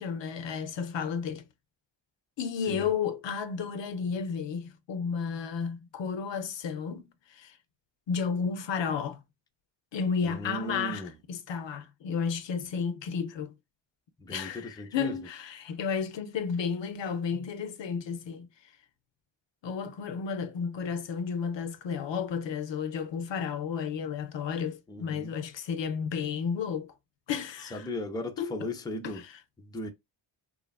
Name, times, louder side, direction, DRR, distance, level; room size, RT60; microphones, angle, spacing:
voice 1, 0.0-1.5 2.4-7.5 8.1-9.2 9.9-13.5 14.3-18.5 19.6-26.9 27.3-27.9 28.4-28.7 29.1-29.2, left 6 dB, 65° left, 0.6 m, -32 dB
voice 2, 2.6-2.9 10.2-11.1 14.2-15.2 24.9-25.3 27.6-29.3 29.6-29.9, left 1 dB, 10° left, 0.4 m, -37 dB
3.0 x 2.4 x 2.2 m
cardioid pair, 80°, 49 cm